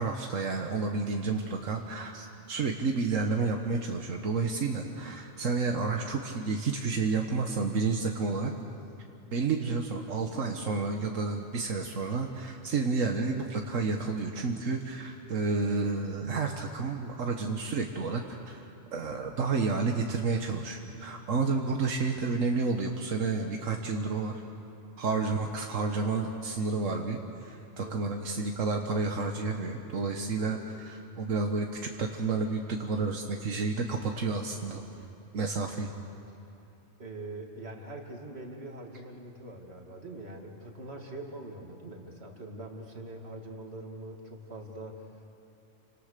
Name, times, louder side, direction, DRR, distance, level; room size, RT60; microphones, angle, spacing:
voice 1, 0.0-8.5 9.3-24.4 25.0-34.8 35.3-35.9, right 4 dB, 85° right, 3 dB, 1.6 m, -30 dB
voice 2, 27.8-28.1 37.0-45.2, right 2 dB, 55° right, 2 dB, 2.7 m, -43 dB
29.5 x 25.5 x 6.7 m, 2.7 s
omnidirectional pair, 1.3 m